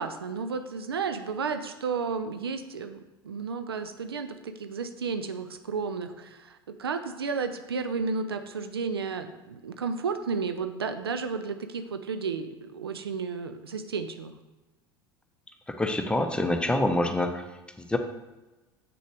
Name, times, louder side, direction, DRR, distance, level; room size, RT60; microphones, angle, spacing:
voice 1, 0.0-14.3, right 5 dB, 75° right, 8 dB, 0.6 m, -32 dB
voice 2, 15.8-17.4 17.9-18.0, left 1 dB, 10° left, 6 dB, 0.8 m, -25 dB
7.7 x 6.4 x 3.5 m, 1.1 s
figure-of-eight pair, 70°, 13 cm